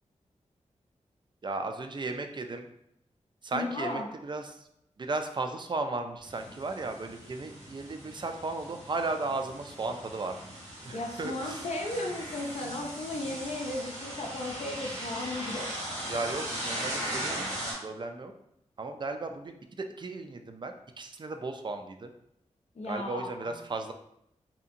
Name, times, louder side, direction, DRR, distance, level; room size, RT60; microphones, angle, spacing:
voice 1, 1.4-2.7 3.4-4.7 5.0-10.4 10.9-11.6 16.1-17.5 17.8-18.3 18.8-22.1 22.9-23.9, right 3 dB, 35° right, 6 dB, 0.4 m, -35 dB
voice 2, 3.5-4.1 10.9-15.8 22.8-23.6, left 2 dB, 60° left, 0 dB, 0.5 m, -35 dB
sound 1, 6.2-17.7, right 1 dB, 85° right, 1.2 m, -39 dB
2.8 x 2.5 x 2.5 m, 0.76 s
cardioid pair, 45°, 13 cm